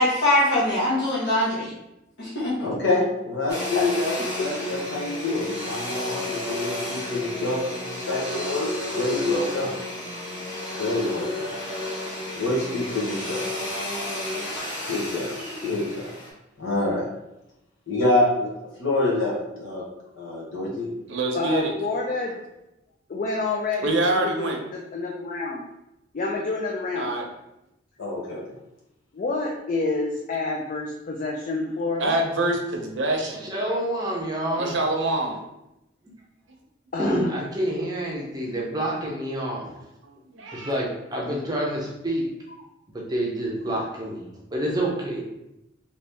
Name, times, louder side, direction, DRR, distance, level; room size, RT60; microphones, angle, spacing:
voice 1, 0.0-1.7 2.2-2.7, left 1 dB, 60° left, -9 dB, 1.0 m, -22 dB
voice 2, 2.6-9.7 10.8-11.5 12.3-13.4 14.9-15.3 15.6-16.1 16.6-17.1 17.9-18.5 18.8-19.8 20.1-20.9 28.0-28.4, left 2 dB, 85° left, -5 dB, 1.0 m, -26 dB
Domestic sounds home sounds, 3.5-16.3, left 1 dB, 15° left, 1.4 m, -32 dB
voice 3, 20.8-21.7 23.8-24.6 26.9-27.3 32.0-33.5 34.6-35.4 39.4-39.5 40.3-40.7, right 2 dB, 75° right, 1 dB, 0.7 m, -25 dB
voice 4, 21.3-22.3 23.1-25.6 26.1-27.1 29.1-32.2 36.9-37.3, left 3 dB, 45° left, -1 dB, 0.4 m, -28 dB
voice 5, 33.3-34.7 37.0-39.7 40.5-42.3 42.9-45.3, right 1 dB, 20° right, -3 dB, 0.5 m, -28 dB
3.0 x 2.7 x 3.4 m, 0.89 s
head